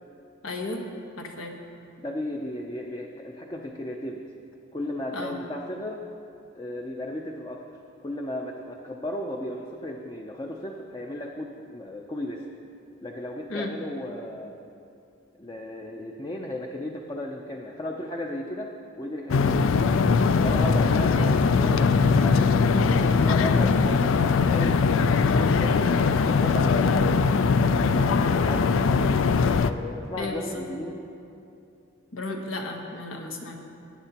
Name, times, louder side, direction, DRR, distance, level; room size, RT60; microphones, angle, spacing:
voice 1, 0.4-0.8 1.2-1.6 5.1-5.3 13.5-13.7 21.0-21.2 30.2-30.6 32.1-33.6, left 2 dB, 90° left, 1 dB, 1.3 m, -33 dB
voice 2, 2.0-4.2 4.7-6.1 6.5-12.5 13.0-14.5 15.4-19.9 20.4-25.9 26.2-27.3 28.1-29.1 29.7-31.0, left 1 dB, 20° left, 0 dB, 0.5 m, -35 dB
sound 1, 19.3-29.7, left 5 dB, 70° left, 0.4 m, -21 dB
18.0 x 9.1 x 2.9 m, 2.7 s
head